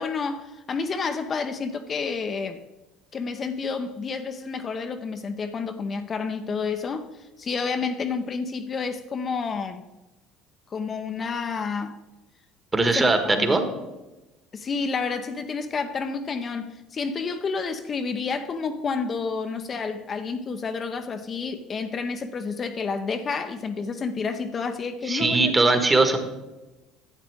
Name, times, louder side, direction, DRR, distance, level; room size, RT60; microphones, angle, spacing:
voice 1, 0.0-2.6 3.1-9.8 10.7-12.0 12.8-13.6 14.5-25.5, left 5 dB, 40° left, 7 dB, 0.7 m, -30 dB
voice 2, 12.7-13.6 25.1-26.2, right 3 dB, 20° right, 6 dB, 1.5 m, -20 dB
11.5 x 8.3 x 3.6 m, 1.1 s
hypercardioid pair, 70°, 0 cm